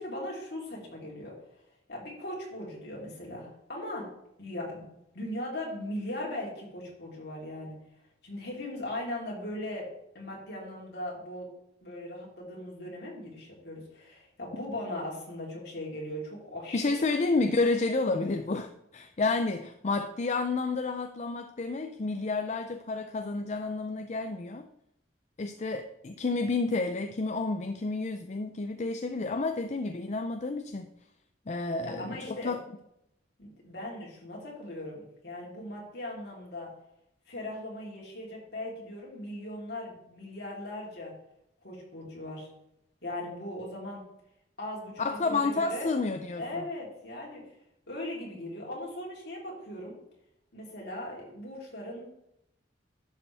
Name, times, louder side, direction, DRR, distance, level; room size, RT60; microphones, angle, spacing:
voice 1, 0.0-1.4 1.9-4.1 4.4-4.8 5.1-7.8 8.2-11.5 11.8-16.8 31.8-32.6 33.4-36.7 37.3-41.1 41.6-42.5 43.0-44.0 44.6-46.0 46.3-47.4 47.9-50.0 50.5-52.1, left 1 dB, 60° left, -3 dB, 3.5 m, -39 dB
voice 2, 16.7-24.7 25.4-30.9 31.5-32.6 45.0-46.6, left 3 dB, 40° left, 7 dB, 0.5 m, -30 dB
11.5 x 6.8 x 3.4 m, 0.79 s
head